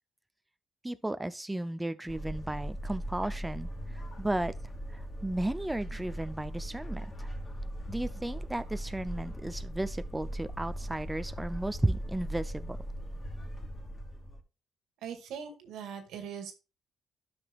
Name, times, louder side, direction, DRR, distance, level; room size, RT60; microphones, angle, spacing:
voice 1, 0.8-4.5 4.9-7.3 7.9-12.8, right 1 dB, 10° right, 0.5 m, -34 dB
sound 1, 2.1-14.4, equal, 35° left, 2.7 m, -39 dB
voice 2, 15.0-16.5, right 7 dB, 85° right, 1.9 m, -41 dB
12.0 x 6.1 x 2.4 m
cardioid pair, 90°, 0 cm